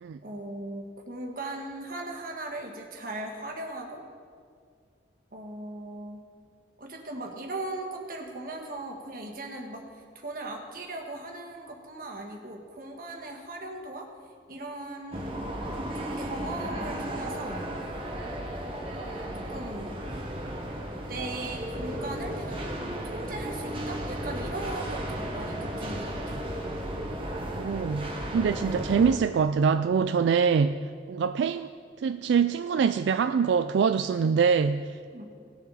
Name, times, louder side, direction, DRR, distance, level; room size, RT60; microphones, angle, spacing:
voice 1, 0.2-4.1 5.3-6.2 6.8-14.1 14.5-15.4 15.9-17.7 19.3-20.2 21.1-22.6 23.1-26.4 35.1-35.3, right 2 dB, 50° right, 1 dB, 1.6 m, -38 dB
sound 1, 15.1-29.1, right 1 dB, 30° right, 1.4 m, -34 dB
voice 2, 27.3-31.7 32.0-34.9, right 6 dB, 80° right, 10 dB, 0.3 m, -24 dB
19.0 x 7.0 x 4.1 m, 2.1 s
head